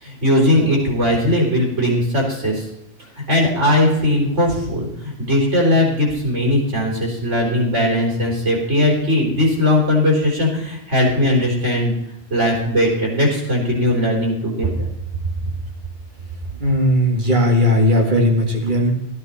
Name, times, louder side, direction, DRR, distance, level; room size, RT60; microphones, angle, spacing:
voice 1, 0.0-2.6 3.2-11.9 12.3-14.9, left 1 dB, 85° right, -2 dB, 4.2 m, -18 dB
voice 2, 16.6-18.9, left 1 dB, 45° right, 1 dB, 2.2 m, -17 dB
14.0 x 9.7 x 4.3 m, 0.81 s
omnidirectional pair, 1.2 m